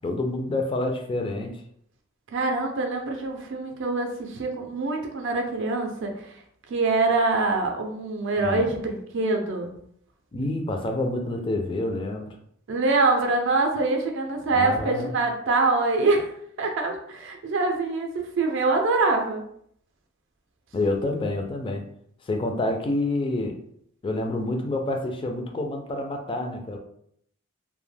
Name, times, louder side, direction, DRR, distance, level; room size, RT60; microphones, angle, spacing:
voice 1, 0.0-1.6 8.4-8.7 10.3-12.3 14.5-15.1 20.7-21.8 22.3-23.6 24.0-26.8, left 2 dB, 25° left, 4 dB, 0.3 m, -28 dB
voice 2, 2.3-6.1 6.7-9.7 12.7-16.3 16.6-19.4, right 3 dB, 65° right, 3 dB, 0.4 m, -24 dB
2.1 x 2.0 x 3.2 m, 0.67 s
head